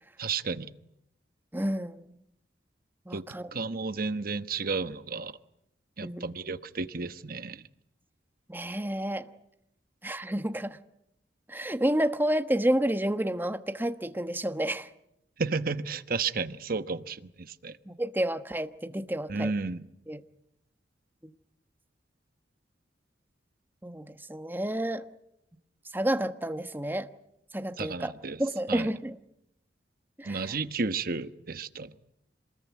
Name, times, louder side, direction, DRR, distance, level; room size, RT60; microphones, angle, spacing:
voice 1, 0.2-0.7 3.1-3.2 3.5-5.3 6.0-7.7 15.4-17.7 19.3-19.8 27.8-28.4 28.7-28.9 30.3-31.9, right 4 dB, 55° right, 1.1 m, -32 dB
voice 2, 1.5-2.0 3.1-3.5 6.0-6.2 8.5-9.3 10.0-10.8 11.5-14.9 17.9-19.5 20.1-20.2 21.2-21.3 23.8-25.1 25.9-27.1 27.5-28.1 28.4-29.2 30.2-30.6, right 1 dB, 10° right, 1.2 m, -30 dB
27.0 x 20.5 x 9.4 m
head